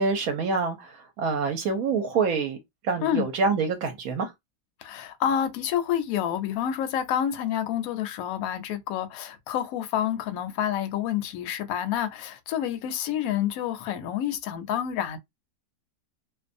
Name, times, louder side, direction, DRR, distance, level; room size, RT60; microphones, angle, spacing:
voice 1, 0.0-2.6 2.8-4.3, right 4 dB, 70° right, 1.0 m, -26 dB
voice 2, 4.8-15.2, left 10 dB, 70° left, 0.9 m, -28 dB
2.6 x 2.2 x 2.5 m
omnidirectional pair, 1.7 m